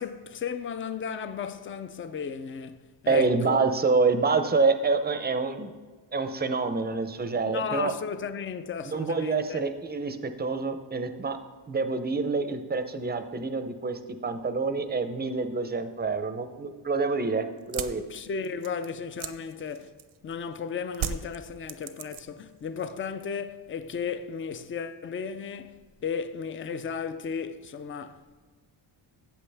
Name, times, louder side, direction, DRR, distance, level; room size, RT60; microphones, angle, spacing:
voice 1, 0.0-2.8 3.0-3.6 7.5-9.6 18.1-19.9 20.2-28.3, left 6 dB, 30° left, 0.4 m, -34 dB
voice 2, 3.1-5.7 6.1-7.9 8.8-11.4 11.7-18.0, right 4 dB, 20° right, 0.5 m, -27 dB
sound 1, 17.6-20.3 20.9-22.5 22.8-23.4, right 9 dB, 80° right, 0.8 m, -36 dB
14.0 x 8.2 x 3.4 m
wide cardioid pair, 160°, 48 cm